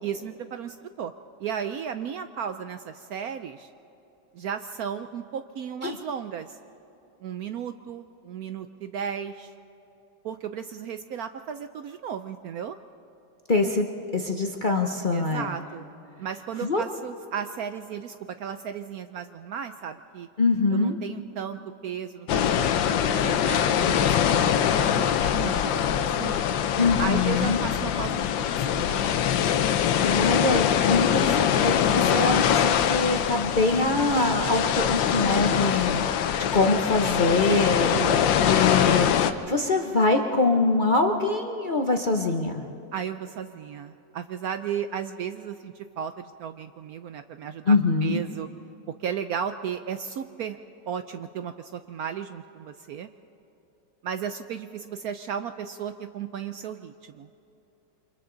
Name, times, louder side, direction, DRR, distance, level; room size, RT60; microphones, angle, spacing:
voice 1, 0.0-1.1 1.4-3.7 4.3-6.6 7.2-9.5 10.2-12.8 15.1-15.9 16.2-20.3 20.7-26.4 27.0-29.1 37.9-38.4 42.9-47.8 48.0-48.5 48.9-50.6 50.9-53.1 54.0-57.3, right 8 dB, 70° right, 9 dB, 0.9 m, -35 dB
voice 2, 13.5-13.9 14.1-15.5 16.6-16.8 20.4-21.0 26.8-27.6 30.0-36.1 36.5-37.9 38.4-42.6 47.7-48.2, left 3 dB, 40° left, 3 dB, 0.7 m, -24 dB
sound 1, 22.3-39.3, left 9 dB, 85° left, 1.5 m, -23 dB
28.5 x 25.0 x 3.9 m, 2.9 s
omnidirectional pair, 2.0 m